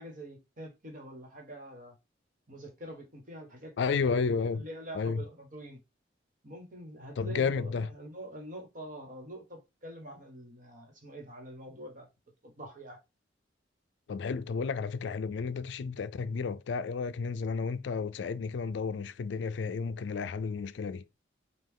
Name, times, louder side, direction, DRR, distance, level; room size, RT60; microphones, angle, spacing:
voice 1, 0.0-1.9 2.5-4.1 4.5-5.8 6.4-12.1 12.4-13.0, right 1 dB, 45° right, 1.4 m, -45 dB
voice 2, 3.8-4.6 4.9-5.2 7.2-7.9 14.1-21.0, left 5 dB, 70° left, 0.4 m, -32 dB
5.2 x 2.4 x 3.6 m
head